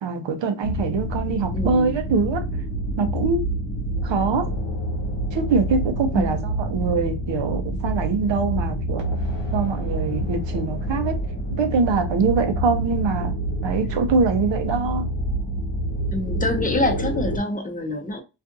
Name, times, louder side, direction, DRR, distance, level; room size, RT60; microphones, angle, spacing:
voice 1, 0.0-2.5 3.0-3.5 4.0-4.5 5.3-9.1 9.5-11.2 11.6-13.3 13.6-15.1, right 4 dB, 80° right, 0.6 m, -23 dB
sound 1, 0.6-17.4, right 1 dB, 75° left, 1.0 m, -27 dB
voice 2, 1.5-2.0 6.1-6.4 16.1-18.2, left 1 dB, 20° left, 0.6 m, -26 dB
2.5 x 2.4 x 2.5 m
cardioid pair, 70°, 44 cm